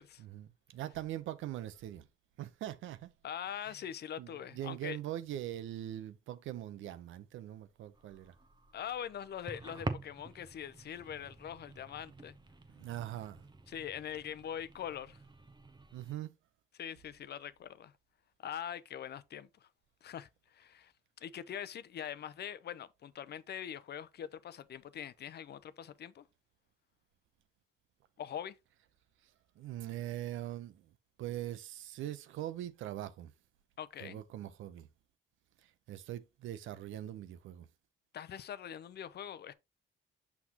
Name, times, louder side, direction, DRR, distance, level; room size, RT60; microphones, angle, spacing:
voice 1, 0.2-2.1 2.4-3.1 3.6-3.8 4.2-8.3 12.7-13.5 15.9-16.3 29.6-30.9 31.2-33.3 34.0-34.9 35.6-37.7, right 13 dB, 80° right, 0.7 m, -42 dB
voice 2, 3.2-5.0 8.7-12.4 13.7-15.2 16.8-17.9 18.4-19.7 20.0-20.9 21.2-26.3 28.2-28.6 33.8-34.2 38.1-39.5, left 9 dB, 55° left, 0.6 m, -43 dB
sound 1, 7.9-16.1, right 3 dB, 20° right, 1.0 m, -47 dB
6.0 x 6.0 x 2.9 m
cardioid pair, 90°, 20 cm